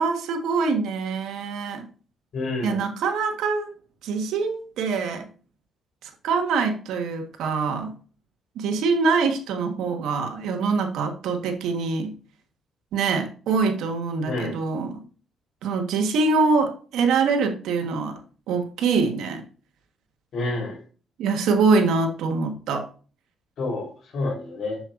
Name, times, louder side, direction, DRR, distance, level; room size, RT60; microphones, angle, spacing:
voice 1, 0.0-1.9 2.6-3.7 4.0-5.3 6.0-7.9 8.5-12.1 12.9-15.0 15.6-18.2 18.5-19.4 21.2-22.9, right 4 dB, 85° right, 5 dB, 1.4 m, -24 dB
voice 2, 2.3-2.9 14.3-14.6 20.3-20.8 23.6-24.8, left 2 dB, 65° left, -1 dB, 3.8 m, -29 dB
7.7 x 7.3 x 2.6 m, 0.39 s
cardioid pair, 90°, 0 cm